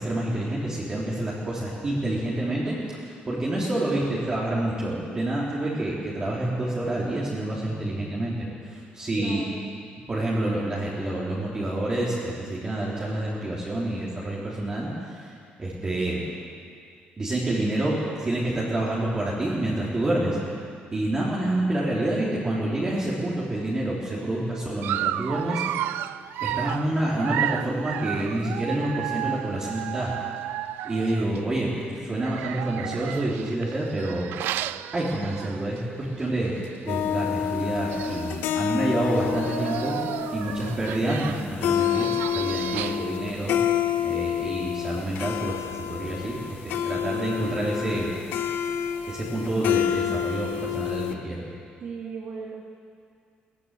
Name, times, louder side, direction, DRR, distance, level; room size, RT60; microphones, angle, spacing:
voice 1, 0.0-2.7 3.0-9.4 10.1-15.3 15.6-16.2 17.2-20.4 20.9-25.6 26.4-30.1 30.8-34.3 34.9-36.5 36.8-40.0 40.3-46.4 46.6-48.1 49.1-51.4, right 1 dB, 20° right, -6 dB, 3.2 m, -28 dB
voice 2, 9.1-9.8 51.8-52.6, right 5 dB, 50° right, 0 dB, 1.7 m, -37 dB
Dog, 24.8-31.4 32.2-35.8 36.2-36.4 36.6-36.7 37.6-37.7 37.9-38.4 39.1-43.2, right 13 dB, 90° right, 0.5 m, -33 dB
sound 1, 36.9-51.1, left 9 dB, 80° left, 1.1 m, -28 dB
19.5 x 14.5 x 9.9 m, 2.3 s
cardioid pair, 160°, 3 cm